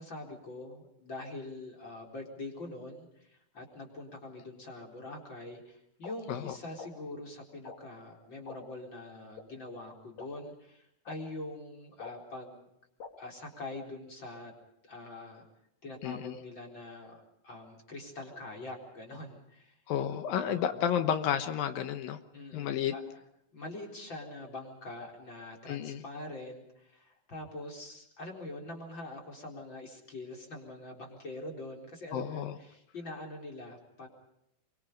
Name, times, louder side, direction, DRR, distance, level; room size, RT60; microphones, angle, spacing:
voice 1, 0.0-12.7 13.2-14.5 14.8-15.4 15.8-19.7 20.5-20.8 22.3-23.0 23.5-34.1, left 2 dB, 30° left, 0 dB, 4.6 m, -44 dB
sound 1, 6.0-6.1 6.8-6.9 7.6-7.8 8.5-8.6 9.4-9.5 10.2-10.3 11.1-11.2 12.0-12.1 13.0-13.1, left 5 dB, 50° left, 4.0 m, -43 dB
voice 2, 16.0-16.4 19.9-22.2 22.5-22.9 25.7-26.0 32.1-32.6, left 9 dB, 75° left, 9 dB, 2.8 m, -31 dB
25.5 x 24.0 x 5.2 m, 0.79 s
omnidirectional pair, 4.2 m